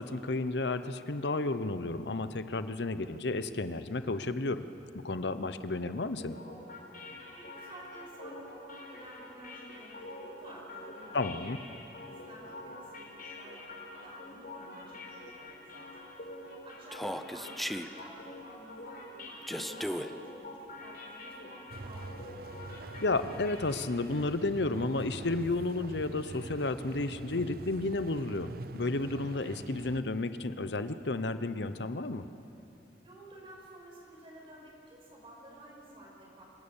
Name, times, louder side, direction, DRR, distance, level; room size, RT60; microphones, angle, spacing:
voice 1, 0.0-4.6 4.9-6.4 11.1-11.6 23.0-32.3, left 2 dB, 70° left, 11 dB, 0.9 m, -32 dB
sound 1, 6.2-24.0, left 2 dB, 55° left, 4.4 m, -47 dB
voice 2, 7.3-16.3 16.6-22.4 33.0-36.4, right 1 dB, 30° right, -3 dB, 5.3 m, -52 dB
Human voice, 16.9-17.9 19.5-20.1, equal, ahead, 0.6 m, -35 dB
sound 2, 21.7-30.0, right 3 dB, 60° right, 0.6 m, -45 dB
27.0 x 17.5 x 7.3 m, 2.8 s
head